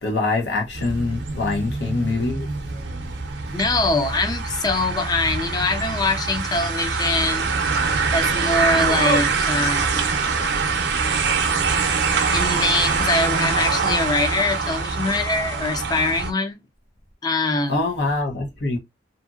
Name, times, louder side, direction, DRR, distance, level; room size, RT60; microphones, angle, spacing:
voice 1, 0.0-2.5 17.7-18.8, left 3 dB, 75° left, 0.8 m, -24 dB
sound 1, 0.7-16.3, right 4 dB, 75° right, 0.6 m, -24 dB
voice 2, 3.5-7.5 8.1-10.1 12.3-16.6 17.2-17.8, left 2 dB, 20° left, 0.4 m, -23 dB
2.7 x 2.6 x 2.3 m
head